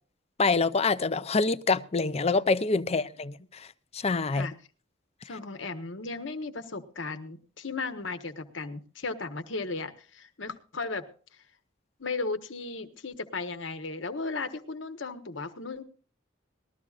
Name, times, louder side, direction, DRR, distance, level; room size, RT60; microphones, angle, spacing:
voice 1, 0.4-3.4 3.9-4.5, left 4 dB, 35° left, 0.5 m, -25 dB
voice 2, 4.3-4.6 5.2-11.1 12.0-15.8, left 3 dB, 75° left, 1.2 m, -36 dB
20.0 x 13.5 x 2.5 m
head